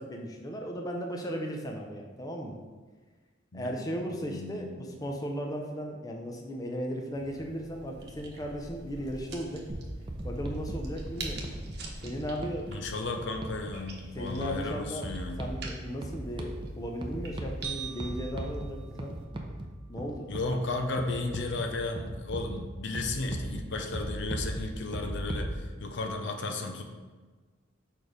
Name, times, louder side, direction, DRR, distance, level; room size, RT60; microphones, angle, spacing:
voice 1, 0.0-2.6 3.5-9.7 10.2-11.4 12.0-12.7 14.2-15.1 15.4-19.2 19.9-20.3 20.9-21.1, equal, 20° left, 1 dB, 0.6 m, -36 dB
voice 2, 3.5-5.0 12.7-15.4 20.3-26.8, left 3 dB, 65° left, 4 dB, 0.7 m, -34 dB
sound 1, 7.2-19.2, right 2 dB, 55° right, 1.0 m, -46 dB
sound 2, 9.7-25.5, right 1 dB, 25° right, 0.6 m, -39 dB
sound 3, 17.6-20.0, right 9 dB, 80° right, 0.6 m, -43 dB
4.9 x 4.5 x 5.0 m, 1.4 s
head